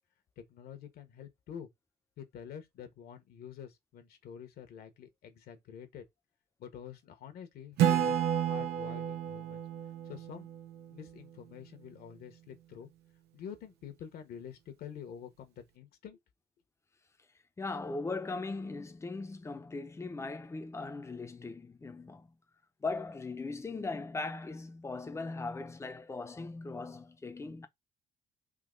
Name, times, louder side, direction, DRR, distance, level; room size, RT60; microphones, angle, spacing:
voice 1, 0.4-1.7 2.2-6.0 6.6-9.6 10.1-10.5 10.9-12.9 13.3-16.2, left 8 dB, 65° left, 1.2 m, -47 dB
Acoustic guitar / Strum, 7.8-11.3, right 10 dB, 80° right, 0.9 m, -31 dB
voice 2, 17.6-22.4 22.8-27.7, left 3 dB, 15° left, 0.7 m, -39 dB
3.8 x 2.9 x 3.9 m
cardioid pair, 110°, 17 cm